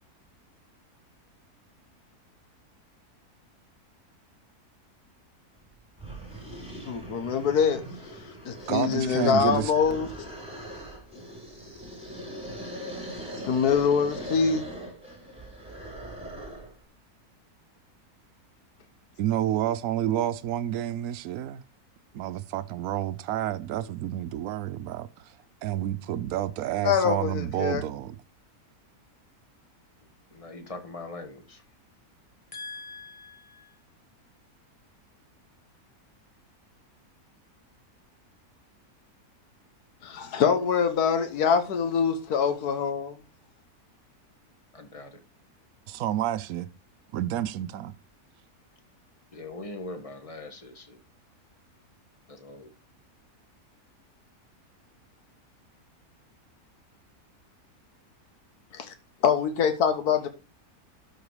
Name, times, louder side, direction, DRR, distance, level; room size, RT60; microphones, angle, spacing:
sound 1, 5.6-5.7 6.0-16.8, right 1 dB, 5° right, 3.7 m, -41 dB
voice 1, 6.9-7.8 8.1-10.3 13.5-14.6 26.8-27.8 40.0-43.2 58.7-58.9 59.2-60.3, left 6 dB, 80° left, 1.6 m, -24 dB
voice 2, 8.7-9.7 19.2-21.6 22.1-25.3 25.6-28.2 45.9-46.7 47.1-47.9, right 12 dB, 75° right, 1.1 m, -29 dB
voice 3, 30.3-31.6 32.5-33.8 44.7-45.2 49.3-51.0 52.3-52.7, left 2 dB, 25° left, 1.5 m, -41 dB
12.0 x 4.9 x 4.8 m
omnidirectional pair, 1.6 m